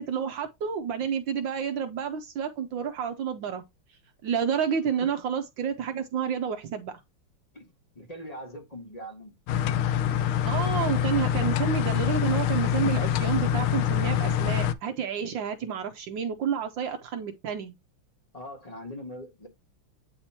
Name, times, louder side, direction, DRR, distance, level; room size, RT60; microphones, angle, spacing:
voice 1, 0.0-3.6 4.2-7.0 10.5-17.7, right 7 dB, 75° right, 1.2 m, -30 dB
voice 2, 7.5-9.3 18.3-19.5, equal, 20° left, 1.1 m, -41 dB
sound 1, 9.5-14.7, left 10 dB, 80° left, 1.4 m, -25 dB
8.7 x 2.9 x 4.2 m
omnidirectional pair, 2.4 m